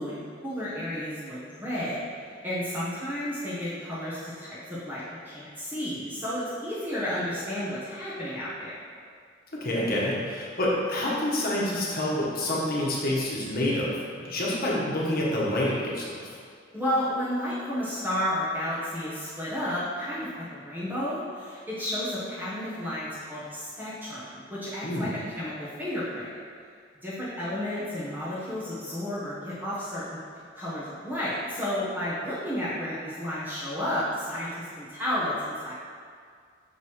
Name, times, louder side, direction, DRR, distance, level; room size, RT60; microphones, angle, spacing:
voice 1, 0.0-8.7 16.7-26.4 27.0-30.2 30.5-35.7, left 1 dB, 10° right, -11 dB, 1.2 m, -32 dB
voice 2, 9.5-13.9 14.2-16.2 24.8-25.1, left 1 dB, 50° left, -5 dB, 1.3 m, -27 dB
6.1 x 5.3 x 3.1 m, 2.1 s
head